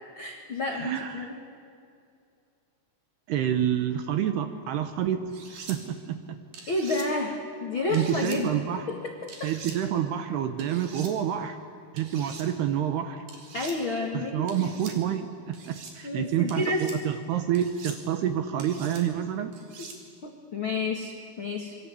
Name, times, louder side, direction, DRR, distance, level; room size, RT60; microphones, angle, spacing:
voice 1, 0.2-1.3 6.7-8.5 8.9-9.0 9.4-9.5 13.5-14.7 16.0-17.0 20.2-21.8, left 3 dB, 60° left, 2 dB, 1.3 m, -30 dB
voice 2, 0.7-1.3 3.3-5.3 5.7-6.4 7.9-8.9 9.4-11.6 11.9-13.2 14.1-19.5, right 10 dB, 70° right, 8 dB, 2.7 m, -28 dB
sound 1, 5.3-5.8 6.5-7.1 7.9-8.4 9.3-9.8 10.6-11.1 12.0-12.5 13.3-13.8 14.5-14.9 15.5-15.9 16.5-17.0 17.5-18.0 18.6-19.0 19.5-20.0, right 5 dB, 50° right, 4.5 m, -43 dB
26.0 x 23.5 x 8.5 m, 2.4 s
omnidirectional pair, 5.7 m